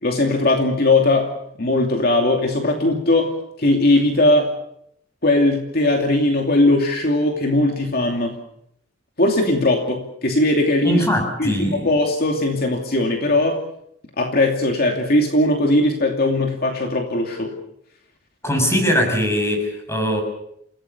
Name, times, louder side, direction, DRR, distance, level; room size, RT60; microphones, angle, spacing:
voice 1, 0.0-1.3 1.6-4.5 5.2-8.4 9.2-11.0 11.4-13.6 14.2-17.6, left 2 dB, 55° left, 2 dB, 2.7 m, -19 dB
voice 2, 10.8-11.9 18.4-20.2, equal, 15° left, 4 dB, 6.5 m, -21 dB
29.0 x 17.5 x 6.9 m, 0.74 s
head